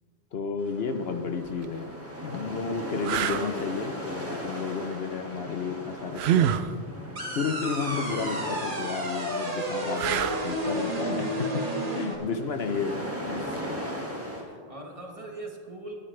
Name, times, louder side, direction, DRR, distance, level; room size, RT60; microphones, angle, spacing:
voice 1, 0.3-1.9 2.2-6.5 7.3-11.6 11.9-13.8, left 5 dB, 65° left, 7 dB, 1.0 m, -32 dB
sound 1, 0.6-14.4, equal, 10° right, 1.8 m, -39 dB
sound 2, 1.4-1.6 2.3-2.4 3.0-3.5 6.1-6.7 9.9-10.6 13.5-13.7, right 10 dB, 70° right, 0.8 m, -26 dB
sound 3, 7.2-12.2, right 1 dB, 50° right, 1.9 m, -31 dB
voice 2, 14.1-16.0, right 2 dB, 30° right, 1 dB, 1.5 m, -42 dB
21.5 x 10.0 x 3.3 m, 2.1 s
omnidirectional pair, 1.1 m